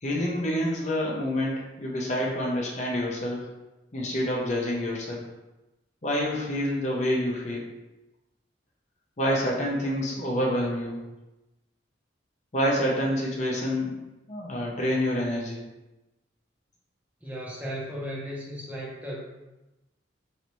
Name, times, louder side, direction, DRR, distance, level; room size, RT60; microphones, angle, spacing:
voice 1, 0.0-3.5 3.9-5.2 6.0-7.7 9.2-11.0 12.5-13.9 14.3-15.6, equal, 40° left, -2 dB, 0.7 m, -27 dB
voice 2, 17.2-19.2, equal, 10° right, -5 dB, 0.7 m, -35 dB
3.9 x 3.2 x 3.0 m, 1.0 s
head